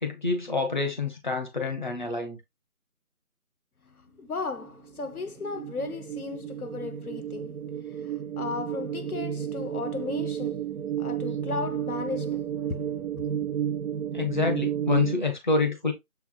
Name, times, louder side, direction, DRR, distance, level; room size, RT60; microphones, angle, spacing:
voice 1, 0.0-2.4 14.1-15.9, left 4 dB, 30° left, 1.0 m, -27 dB
voice 2, 3.9-13.3, left 4 dB, 75° left, 0.9 m, -36 dB
sound 1, 4.6-15.1, right 9 dB, 90° right, 0.5 m, -32 dB
6.9 x 3.3 x 2.3 m
figure-of-eight pair, 165°, 44 cm